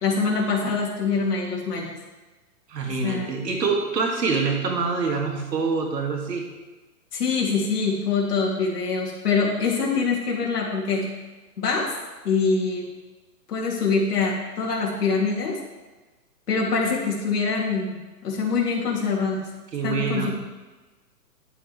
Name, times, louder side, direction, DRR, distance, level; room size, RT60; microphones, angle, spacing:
voice 1, 0.0-1.9 3.0-3.3 7.1-11.1 11.6-11.9 12.2-12.9 13.5-15.6 16.5-19.5 19.8-20.3, left 4 dB, 70° left, -2 dB, 2.9 m, -24 dB
voice 2, 2.7-6.5 19.7-20.3, right 4 dB, 85° right, 1 dB, 2.3 m, -25 dB
11.5 x 8.0 x 3.3 m, 1.2 s
hypercardioid pair, 160°, 49 cm